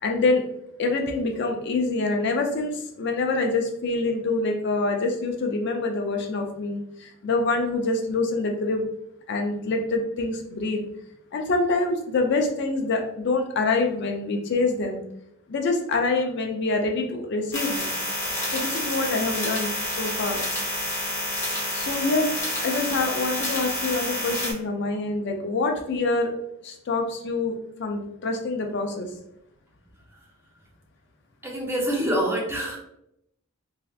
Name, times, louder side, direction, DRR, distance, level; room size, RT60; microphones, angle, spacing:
voice 1, 0.0-0.5 0.8-8.8 9.3-10.8 11.3-15.0 15.5-17.9 18.5-20.4 21.7-26.3 26.6-29.1, left 3 dB, 55° left, 3 dB, 0.4 m, -26 dB
sound 1, 17.5-24.5, left 1 dB, 15° left, 0.8 m, -29 dB
voice 2, 31.4-32.8, equal, 10° right, -2 dB, 0.6 m, -26 dB
3.2 x 2.7 x 2.3 m, 0.77 s
head